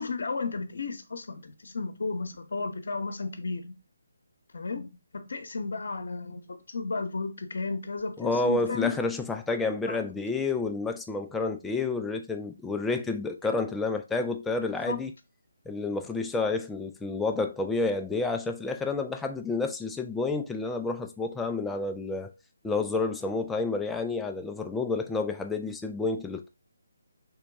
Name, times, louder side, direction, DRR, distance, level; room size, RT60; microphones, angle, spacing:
voice 1, 0.0-3.8 4.5-9.0 9.9-10.0 14.9-15.0, left 4 dB, 60° left, 0.8 m, -33 dB
voice 2, 8.2-15.1 15.7-22.3 22.6-26.5, left 3 dB, 5° left, 0.3 m, -30 dB
3.5 x 2.9 x 3.5 m
figure-of-eight pair, 150°, 0 cm